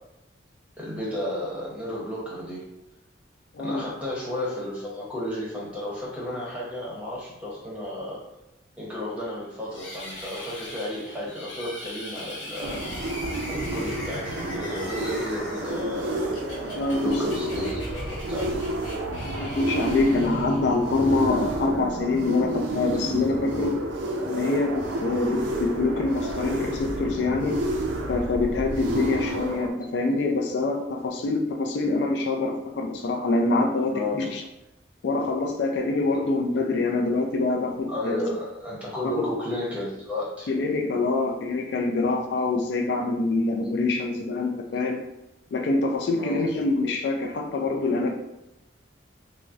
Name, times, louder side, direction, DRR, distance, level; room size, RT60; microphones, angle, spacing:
voice 1, 0.8-2.6 3.6-8.2 8.8-12.8 13.1-16.3 16.6-18.6 19.3-19.6 28.9-29.1 33.9-34.3 36.1-36.2 37.9-40.5 46.2-46.4, left 1 dB, 5° right, -6 dB, 0.7 m, -33 dB
sound 1, 9.7-21.0, left 1 dB, 80° left, 0.7 m, -40 dB
sound 2, 12.6-29.7, right 1 dB, 80° right, 0.4 m, -30 dB
voice 2, 16.8-17.2 19.1-23.8 24.2-27.6 28.1-34.4 35.0-38.2 39.2-39.3 40.5-45.0 45.5-48.1, left 3 dB, 60° left, 2 dB, 0.3 m, -25 dB
3.7 x 2.0 x 2.4 m, 0.91 s
head